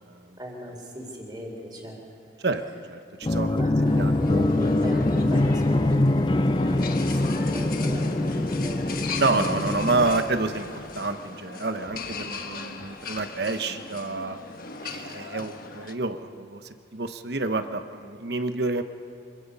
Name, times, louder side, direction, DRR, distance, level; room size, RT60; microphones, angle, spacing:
voice 1, 0.4-2.0 3.5-9.6, equal, 20° right, 0 dB, 3.9 m, -36 dB
voice 2, 2.9-3.6 3.9-4.1 9.2-10.7 10.9-14.4 14.8-16.6 16.9-18.8, right 3 dB, 60° right, 9 dB, 1.1 m, -28 dB
sound 1, 3.2-10.8, left 2 dB, 25° left, 0.5 m, -24 dB
sound 2, 3.8-15.9, left 4 dB, 50° left, 1.4 m, -38 dB
26.5 x 23.0 x 5.5 m, 2.6 s
head